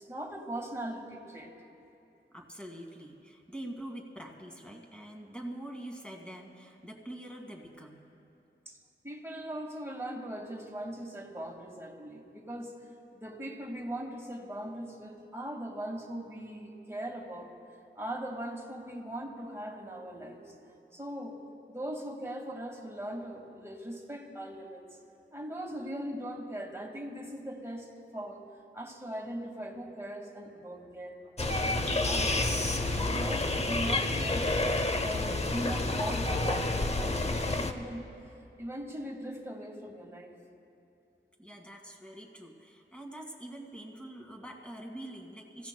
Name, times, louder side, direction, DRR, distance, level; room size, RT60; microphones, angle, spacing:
voice 1, 0.0-1.5 8.7-8.8 9.0-12.7 13.1-17.5 18.0-20.5 20.9-21.4 21.7-24.9 25.3-28.4 28.7-38.0 38.6-40.3, right 1 dB, 15° right, 0 dB, 1.9 m, -40 dB
voice 2, 2.3-8.0 41.4-45.7, right 1 dB, 5° left, -1 dB, 2.0 m, -44 dB
sound 1, 31.4-37.7, left 2 dB, 30° left, 0.7 m, -29 dB
27.0 x 16.0 x 2.2 m, 2.7 s
wide cardioid pair, 85°, 20 cm